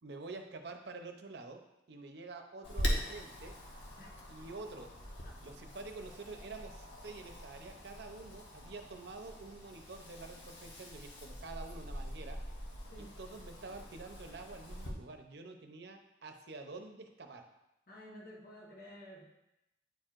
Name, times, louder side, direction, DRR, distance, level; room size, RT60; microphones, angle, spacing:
voice 1, 0.0-1.6 1.9-3.5 4.3-4.9 5.4-12.4 13.2-17.4, right 3 dB, 65° right, 5 dB, 0.7 m, -48 dB
Wind, 2.6-14.9, equal, 90° left, 1.1 m, -42 dB
voice 2, 2.8-3.2 4.0-4.2 5.2-5.4 12.9-13.2 17.9-19.2, equal, 55° left, -3 dB, 1.3 m, -52 dB
9.3 x 4.5 x 2.5 m, 0.89 s
head